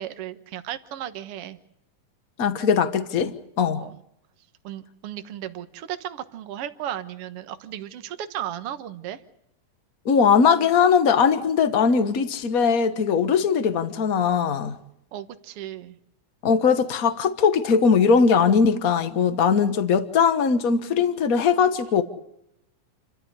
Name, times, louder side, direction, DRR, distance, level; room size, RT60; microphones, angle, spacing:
voice 1, 0.0-1.6 3.8-4.0 4.6-9.2 15.1-16.0, right 11 dB, 55° right, 2.0 m, -35 dB
voice 2, 2.4-3.8 10.0-14.8 16.4-22.0, left 6 dB, 70° left, 0.8 m, -20 dB
28.5 x 13.5 x 9.8 m
omnidirectional pair, 3.6 m